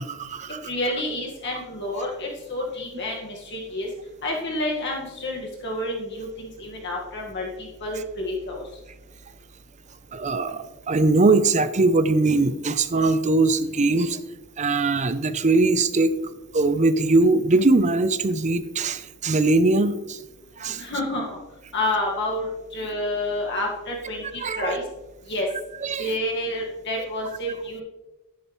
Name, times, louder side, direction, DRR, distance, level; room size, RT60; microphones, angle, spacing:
voice 1, 0.0-0.7 10.1-14.2 14.6-16.1 16.5-20.2 20.6-20.9 24.4-24.8 25.8-26.1, right 3 dB, 35° right, 12 dB, 0.6 m, -21 dB
voice 2, 0.7-3.9 4.2-7.5 7.8-8.6 20.8-21.4 21.7-24.2 24.6-24.8 25.3-25.5 26.0-27.8, left 1 dB, 55° left, -1 dB, 1.8 m, -29 dB
11.5 x 10.5 x 3.2 m, 1.0 s
head